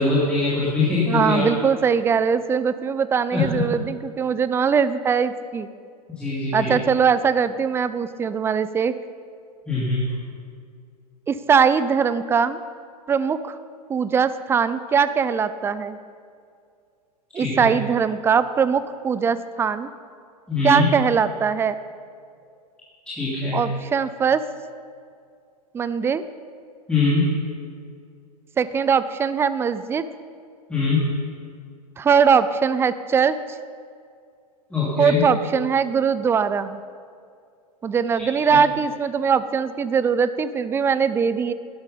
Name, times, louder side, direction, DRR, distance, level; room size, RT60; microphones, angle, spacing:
voice 1, 0.0-1.4 3.3-3.5 6.2-6.7 9.7-10.1 17.3-17.7 20.5-20.9 23.1-23.6 26.9-27.3 30.7-31.1 34.7-35.2 38.5-38.6, left 3 dB, 5° left, -9 dB, 2.8 m, -22 dB
voice 2, 1.1-5.7 6.5-9.0 11.3-12.6 13.1-13.6 13.9-16.0 17.3-19.9 20.6-21.8 23.5-24.4 25.7-26.2 28.6-30.1 32.0-33.4 35.0-36.8 37.8-41.5, right 6 dB, 10° right, 14 dB, 0.4 m, -21 dB
12.5 x 10.5 x 5.4 m, 2.2 s
figure-of-eight pair, 95°, 21 cm